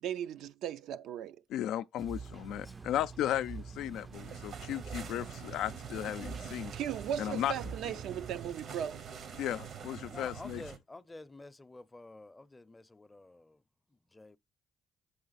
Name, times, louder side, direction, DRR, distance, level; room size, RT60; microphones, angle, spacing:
voice 1, 0.0-1.4 6.4-9.1, right 9 dB, 85° right, 0.5 m, -37 dB
voice 2, 1.5-6.7 7.2-7.5 9.4-10.6, left 11 dB, 85° left, 0.3 m, -35 dB
sound 1, 2.0-8.6, right 5 dB, 30° right, 0.4 m, -46 dB
sound 2, 4.1-10.8, right 7 dB, 70° right, 0.9 m, -45 dB
voice 3, 10.1-13.6 13.9-14.4, left 2 dB, 20° left, 0.5 m, -50 dB
7.8 x 4.5 x 4.1 m
cardioid pair, 90°, 0 cm